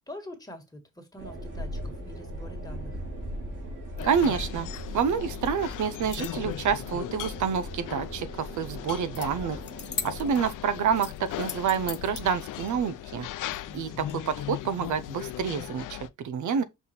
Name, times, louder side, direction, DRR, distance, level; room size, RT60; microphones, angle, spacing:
voice 1, 0.0-3.0 13.5-14.2, left 1 dB, 10° left, 1.7 m, -45 dB
sound 1, 1.2-10.3, equal, 90° right, 2.7 m, -39 dB
sound 2, 4.0-16.1, left 13 dB, 85° left, 0.6 m, -38 dB
voice 2, 4.0-4.7 4.9-9.6 10.0-13.3 13.7-16.6, right 7 dB, 70° right, 0.8 m, -28 dB
sound 3, 5.9-6.5 9.1-9.3 9.6-10.5 11.0-12.2, left 7 dB, 35° left, 0.7 m, -37 dB
5.7 x 4.1 x 4.3 m
cardioid pair, 130°, 31 cm